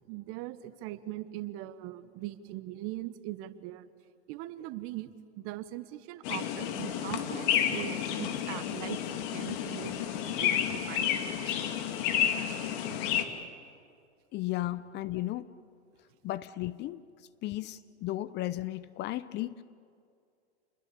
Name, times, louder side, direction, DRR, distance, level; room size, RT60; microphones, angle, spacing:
voice 1, 0.1-3.9 4.3-5.1 5.4-9.0 9.3-10.0 10.4-11.2 11.4-11.6 12.9-13.0, right 15 dB, 40° right, 1.4 m, -40 dB
sound 1, 6.2-13.2, left 9 dB, 50° left, 2.5 m, -31 dB
voice 2, 14.3-15.5 16.2-17.0 17.4-19.6, left 15 dB, 30° left, 0.7 m, -34 dB
28.5 x 21.0 x 8.5 m
hypercardioid pair, 115°, 33 cm